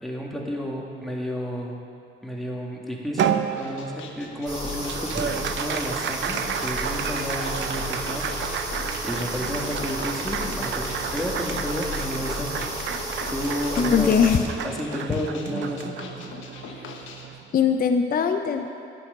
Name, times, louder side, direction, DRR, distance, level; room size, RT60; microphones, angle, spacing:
voice 1, 0.0-1.8 2.2-8.3 9.0-12.7 13.3-14.1 14.6-15.9, equal, ahead, -2 dB, 2.1 m, -31 dB
Applause, 3.2-17.8, right 8 dB, 70° right, 0.6 m, -32 dB
sound 1, 3.6-17.3, left 4 dB, 80° left, 1.3 m, -42 dB
sound 2, 4.5-14.4, equal, 20° right, 3.5 m, -32 dB
voice 2, 13.8-14.5 15.1-15.2 17.5-18.7, left 6 dB, 45° left, 6 dB, 0.7 m, -21 dB
11.0 x 6.3 x 9.1 m, 2.5 s
cardioid pair, 90°, 20 cm